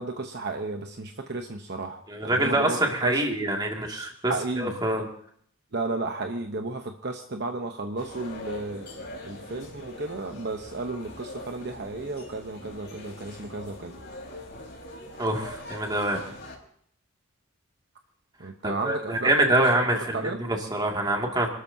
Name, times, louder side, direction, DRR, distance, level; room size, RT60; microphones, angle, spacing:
voice 1, 0.0-3.5 4.3-4.8 5.7-14.0 18.4-19.9 20.1-20.4, right 3 dB, 55° right, 4 dB, 0.9 m, -33 dB
voice 2, 2.1-5.0 15.2-16.2 18.6-21.5, right 1 dB, 20° right, 1 dB, 2.3 m, -25 dB
sound 1, 8.0-16.6, left 1 dB, 50° left, 4.6 m, -42 dB
27.0 x 13.0 x 2.8 m, 0.63 s
head